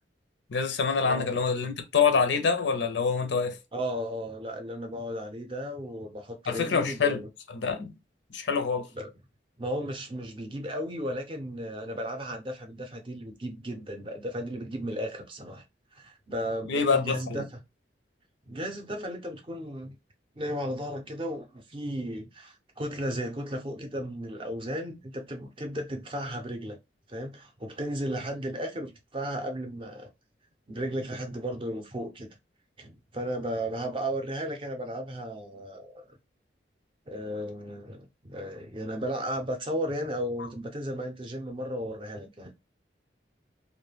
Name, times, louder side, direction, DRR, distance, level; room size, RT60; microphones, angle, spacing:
voice 1, 0.5-3.6 6.5-7.2 7.5-7.9 8.3-8.9 16.7-17.4, left 5 dB, 80° left, 0.5 m, -26 dB
voice 2, 3.7-7.3 8.9-9.1 9.6-15.6 16.0-17.6 18.5-20.0 20.4-26.8 27.1-30.1 30.7-32.4 32.8-36.0 37.1-42.5, equal, 30° right, 0.5 m, -35 dB
2.2 x 2.1 x 3.2 m
head